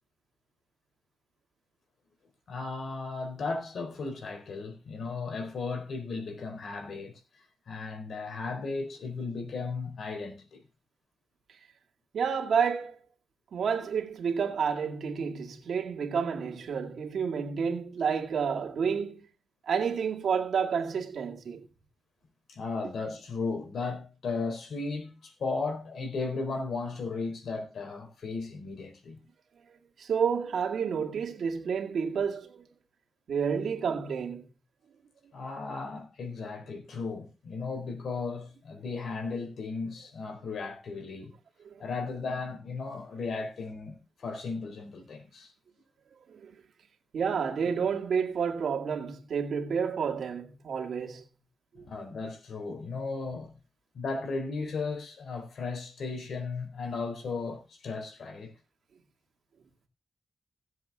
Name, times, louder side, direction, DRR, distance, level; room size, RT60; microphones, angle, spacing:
voice 1, 2.5-10.6 22.5-29.2 35.3-41.3 41.8-45.5 51.7-53.5 53.9-58.5, left 4 dB, 80° left, 4.2 m, -35 dB
voice 2, 12.1-13.0 13.5-19.3 19.6-21.7 30.0-32.6 33.3-34.4 41.6-41.7 46.3-46.6 47.1-51.2 51.8-51.9, right 6 dB, 80° right, 2.1 m, -30 dB
17.0 x 7.7 x 3.6 m
cardioid pair, 70°, 0 cm